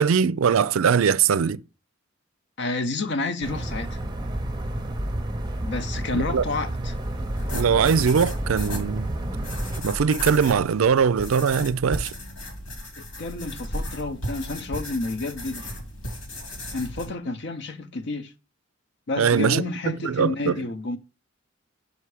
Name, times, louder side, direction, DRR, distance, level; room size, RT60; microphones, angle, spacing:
voice 1, 0.0-1.6 6.1-6.4 7.5-9.1 9.8-12.1 19.2-19.6 20.0-20.5, right 6 dB, 90° right, 0.4 m, -21 dB
voice 2, 2.6-4.0 5.6-7.0 13.0-15.8 16.7-18.3 19.1-21.0, left 3 dB, 60° left, 0.7 m, -30 dB
sound 1, 3.4-9.8, right 1 dB, 20° right, 0.6 m, -30 dB
sound 2, 6.9-17.1, left 1 dB, 85° left, 2.5 m, -35 dB
5.7 x 5.5 x 4.7 m
head